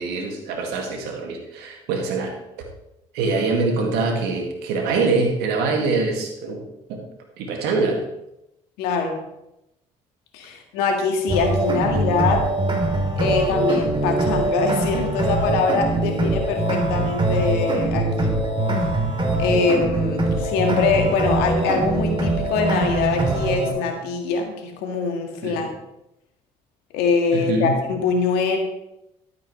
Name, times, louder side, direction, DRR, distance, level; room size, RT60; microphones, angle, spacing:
voice 1, 0.0-2.4 3.1-6.6 6.9-7.0 7.4-8.0 16.1-16.3 25.4-25.7 27.3-27.7, right 3 dB, 75° right, 2 dB, 2.2 m, -24 dB
voice 2, 8.8-9.3 10.3-12.5 13.2-18.3 19.4-25.7 26.9-28.6, left 4 dB, 75° left, 3 dB, 1.9 m, -23 dB
sound 1, 11.3-23.7, right 2 dB, 30° right, 3.0 m, -22 dB
12.5 x 9.3 x 3.2 m, 0.88 s
hypercardioid pair, 55°, 17 cm